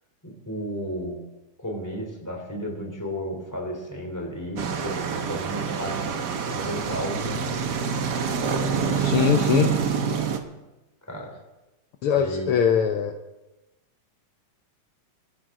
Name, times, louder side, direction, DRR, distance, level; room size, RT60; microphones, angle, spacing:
voice 1, 0.2-1.2 1.6-6.2 6.5-7.6 8.5-9.3 11.1-11.3 12.1-12.5, equal, 5° left, 0 dB, 3.2 m, -33 dB
sound 1, 4.6-10.4, right 6 dB, 80° right, 0.9 m, -26 dB
voice 2, 9.0-9.7 12.0-13.1, left 8 dB, 80° left, 5 dB, 1.2 m, -21 dB
21.0 x 13.5 x 3.8 m, 1.0 s
omnidirectional pair, 3.5 m